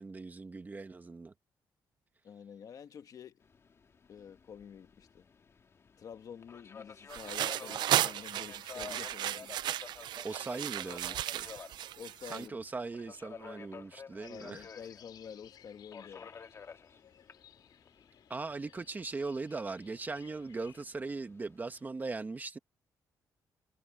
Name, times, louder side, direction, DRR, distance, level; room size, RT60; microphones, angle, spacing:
voice 1, 0.0-1.3 10.2-11.5 12.3-14.6 18.3-22.6, right 3 dB, 25° right, 1.6 m, -39 dB
voice 2, 2.2-3.4 4.1-5.3 6.0-9.6 12.0-12.6 14.3-16.3, left 7 dB, 55° left, 1.8 m, -48 dB
Subway metro underground, 3.4-21.9, left 5 dB, 35° left, 2.1 m, -52 dB
sound 1, 7.1-12.5, right 13 dB, 85° right, 0.4 m, -34 dB
sound 2, 14.2-20.8, left 10 dB, 75° left, 3.1 m, -59 dB
cardioid pair, 135°, 7 cm